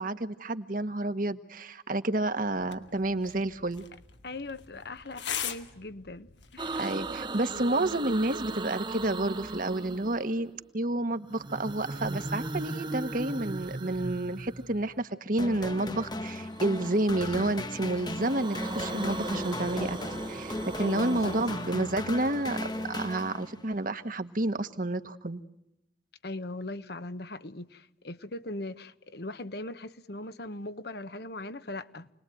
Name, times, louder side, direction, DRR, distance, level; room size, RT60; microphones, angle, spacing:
voice 1, 0.0-3.8 6.7-20.0 20.3-25.4, right 2 dB, 50° right, 1.5 m, -30 dB
sound 1, 2.6-7.6, left 8 dB, 90° left, 2.3 m, -41 dB
voice 2, 4.2-6.8 20.8-21.7 26.2-32.1, left 2 dB, 65° left, 1.3 m, -40 dB
sound 2, 6.6-10.5 11.3-15.0 16.4-17.5 17.9-22.9, right 2 dB, 25° right, 1.0 m, -38 dB
sound 3, 15.4-23.7, left 1 dB, 25° left, 1.3 m, -37 dB
29.0 x 21.0 x 9.2 m
head